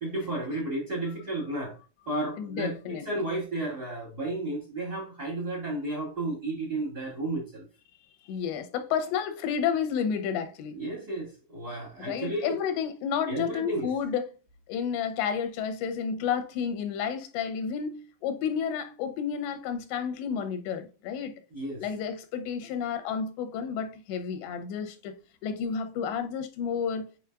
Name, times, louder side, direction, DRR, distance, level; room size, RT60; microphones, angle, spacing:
voice 1, 0.0-1.7 2.0-7.6 10.7-12.6 13.3-13.9 21.5-21.8, right 2 dB, 35° right, 1.7 m, -33 dB
voice 2, 2.4-3.2 8.2-10.8 12.0-14.3 14.7-21.3 21.8-25.2 25.4-27.1, left 7 dB, 85° left, 3.2 m, -31 dB
8.2 x 5.1 x 2.4 m
omnidirectional pair, 5.0 m